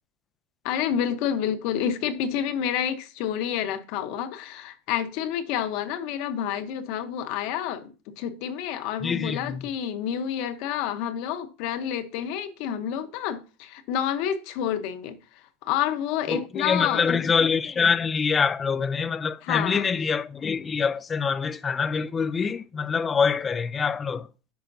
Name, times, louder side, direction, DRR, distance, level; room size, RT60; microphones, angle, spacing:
voice 1, 0.6-7.8 8.2-15.2 15.6-17.2 19.4-19.9, left 9 dB, 50° left, 0.8 m, -29 dB
voice 2, 9.0-9.6 16.3-24.3, left 5 dB, 15° left, 0.3 m, -25 dB
10.5 x 5.1 x 2.6 m
supercardioid pair, 155°, 0 cm